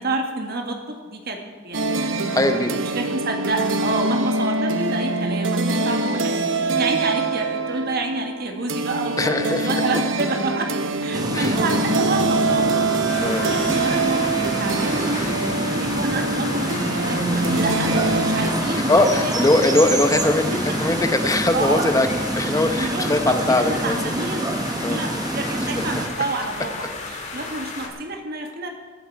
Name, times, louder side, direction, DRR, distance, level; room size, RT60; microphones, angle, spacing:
voice 1, 0.0-2.2 2.8-6.4 6.7-10.7 11.0-12.9 13.4-17.9 18.2-19.3 19.6-20.0 20.5-20.6 21.5-21.8 22.8-24.5 24.9-28.7, right 2 dB, 55° right, 3 dB, 1.9 m, -29 dB
sound 1, 1.7-18.5, right 3 dB, 90° right, 1.0 m, -24 dB
voice 2, 2.3-2.8 9.2-9.8 11.3-11.6 13.2-13.4 17.6-17.8 18.9-22.1 22.4-24.2 24.8-25.0, left 2 dB, 20° left, 7 dB, 0.9 m, -21 dB
sound 2, 11.1-26.1, right 1 dB, 20° right, 1.0 m, -27 dB
sound 3, 13.1-27.9, left 3 dB, 40° left, 2.0 m, -33 dB
22.0 x 8.0 x 4.7 m, 1.4 s
head